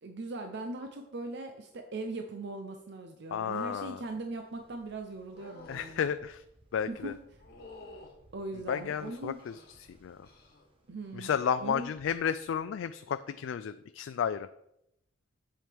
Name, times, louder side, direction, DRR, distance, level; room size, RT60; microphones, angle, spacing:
voice 1, 0.0-6.1 6.9-7.2 8.3-9.4 10.9-11.3 11.6-11.9, right 2 dB, 60° right, 5 dB, 0.6 m, -39 dB
voice 2, 3.3-4.0 5.7-6.4 6.7-7.1 8.7-10.3 11.1-14.5, left 8 dB, 75° left, 11 dB, 0.3 m, -32 dB
Ocean, 3.7-13.3, right 1 dB, 30° right, 1.1 m, -64 dB
sound 1, 5.3-6.0 7.4-8.2 8.9-9.7 10.2-10.7 11.0-11.5 13.0-13.2, left 2 dB, 55° left, 1.7 m, -52 dB
7.7 x 7.4 x 3.5 m, 0.81 s
head